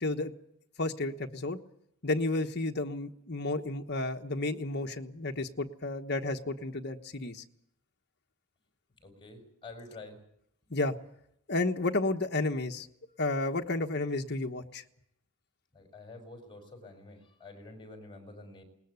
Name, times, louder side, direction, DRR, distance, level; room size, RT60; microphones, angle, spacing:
voice 1, 0.0-0.3 0.8-1.6 2.0-7.4 10.7-10.9 11.5-12.9 13.2-14.8, left 2 dB, 50° left, 4 dB, 1.3 m, -32 dB
voice 2, 9.0-10.2 15.7-18.6, left 2 dB, 20° left, 6 dB, 6.0 m, -48 dB
21.0 x 20.0 x 8.3 m, 0.73 s
head